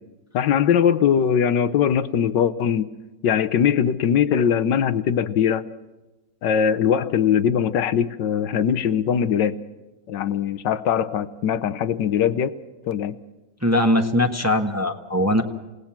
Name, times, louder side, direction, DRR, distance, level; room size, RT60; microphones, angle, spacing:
voice 1, 0.3-2.9 3.2-5.6 6.4-9.6 10.1-12.5 12.8-13.1, left 8 dB, 85° left, 12 dB, 1.6 m, -21 dB
voice 2, 13.6-15.4, left 1 dB, 10° right, 4 dB, 1.2 m, -20 dB
28.0 x 18.0 x 5.9 m, 1.1 s
omnidirectional pair, 1.9 m